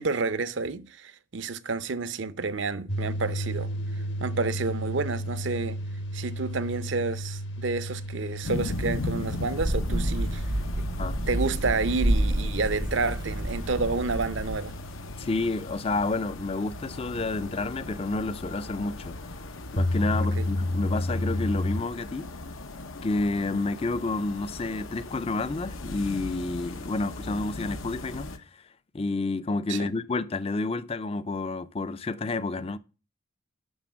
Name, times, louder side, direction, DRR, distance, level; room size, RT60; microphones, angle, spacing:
voice 1, 0.0-3.7 4.2-5.8 6.1-10.4 11.3-14.7 20.4-20.5 29.7-29.9, right 3 dB, 65° right, 0.7 m, -30 dB
sound 1, 2.9-21.8, left 1 dB, 60° left, 1.1 m, -34 dB
sound 2, 8.4-28.4, left 2 dB, 90° left, 1.1 m, -38 dB
sound 3, 9.6-14.6, right 1 dB, 20° right, 0.5 m, -29 dB
voice 2, 15.2-19.2 19.7-22.3 23.0-28.6 28.9-32.8, left 3 dB, 30° left, 0.4 m, -30 dB
12.0 x 4.3 x 7.2 m
head